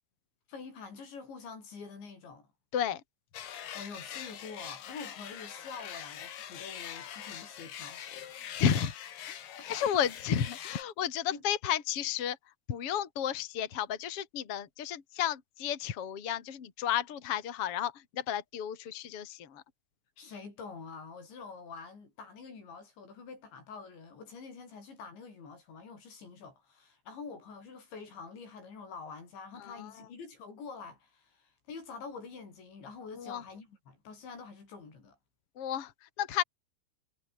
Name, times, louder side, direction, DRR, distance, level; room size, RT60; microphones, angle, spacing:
voice 1, 0.5-2.5 3.6-8.6 9.5-10.1 11.3-11.4 20.2-35.2, left 5 dB, 90° left, 9.8 m, -46 dB
sound 1, 3.3-10.8, left 10 dB, 70° left, 4.2 m, -43 dB
voice 2, 8.6-8.9 9.3-9.4 9.7-12.4 12.7-19.6 29.8-29.9 33.2-33.4 35.6-35.9 36.2-36.4, left 9 dB, 40° left, 2.9 m, -32 dB
omnidirectional pair, 5.0 m